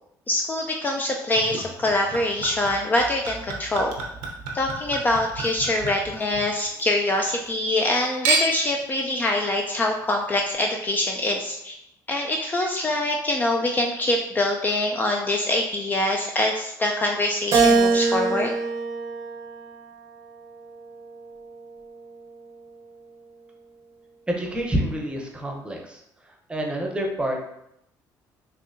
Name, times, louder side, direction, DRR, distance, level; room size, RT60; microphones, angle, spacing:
voice 1, 0.3-3.9 4.5-11.7 12.1-18.5, left 1 dB, 25° left, 2 dB, 0.3 m, -24 dB
Chink clink / Liquid, 1.4-6.9 7.2-7.9 8.2-8.8 9.5-9.6, right 4 dB, 90° right, 0.7 m, -31 dB
Keyboard (musical), 17.5-20.0 20.6-21.8, right 4 dB, 50° right, 0.6 m, -23 dB
voice 2, 24.3-26.0 26.3-27.4, right 1 dB, 15° right, 1 dB, 0.7 m, -28 dB
4.0 x 2.7 x 2.6 m, 0.79 s
cardioid pair, 95°, 8 cm